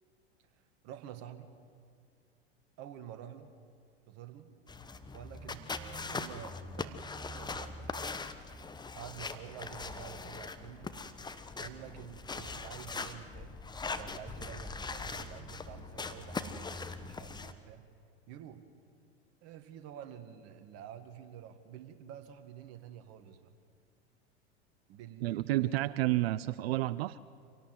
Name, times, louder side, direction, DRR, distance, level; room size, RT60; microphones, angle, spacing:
voice 1, 0.5-1.5 2.8-3.5 4.1-4.5 5.1-7.0 7.3-8.0 8.9-10.9 11.6-17.9 18.3-18.6 19.4-23.5 24.9-25.7, right 10 dB, 45° right, 8 dB, 2.1 m, -49 dB
sound 1, 4.7-17.5, left 4 dB, 10° left, 1.2 m, -41 dB
voice 2, 25.2-27.2, right 17 dB, 65° right, 17 dB, 0.6 m, -30 dB
26.5 x 18.0 x 7.9 m, 2.3 s
hypercardioid pair, 85°, 33 cm